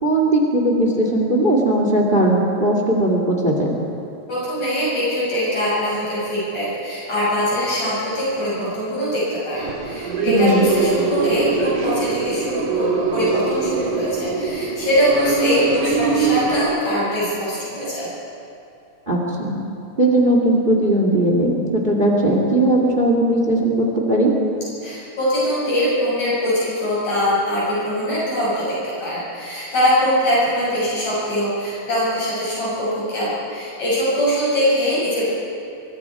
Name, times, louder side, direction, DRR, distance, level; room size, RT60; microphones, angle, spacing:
voice 1, 0.0-3.7 10.3-10.6 19.1-19.6 20.0-24.3, right 1 dB, 20° right, 0 dB, 2.1 m, -18 dB
voice 2, 4.3-18.1 24.8-35.3, equal, 65° left, -8 dB, 8.5 m, -22 dB
sound 1, 9.6-16.6, right 4 dB, 80° right, 3.9 m, -22 dB
24.5 x 23.0 x 4.8 m, 2.6 s
omnidirectional pair, 3.5 m